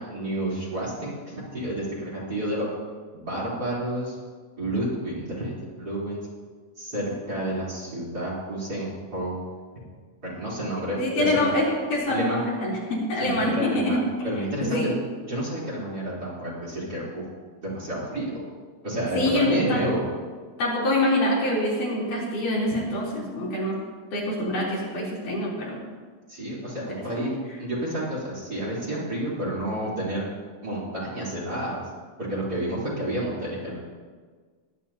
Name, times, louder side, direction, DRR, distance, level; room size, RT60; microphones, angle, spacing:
voice 1, 0.0-2.7 3.1-4.1 4.6-6.2 6.8-9.4 10.2-11.5 12.1-12.5 13.2-14.9 15.3-17.2 17.6-18.4 18.8-20.0 26.3-27.3 27.6-30.2 30.6-31.8 32.2-33.8, right 1 dB, 30° right, -6 dB, 4.1 m, -30 dB
voice 2, 10.9-14.0 14.6-14.9 19.1-19.8 20.6-23.8 24.1-25.8 27.2-27.3, left 1 dB, 75° left, -6 dB, 5.1 m, -25 dB
22.0 x 10.5 x 2.9 m, 1.5 s
omnidirectional pair, 3.7 m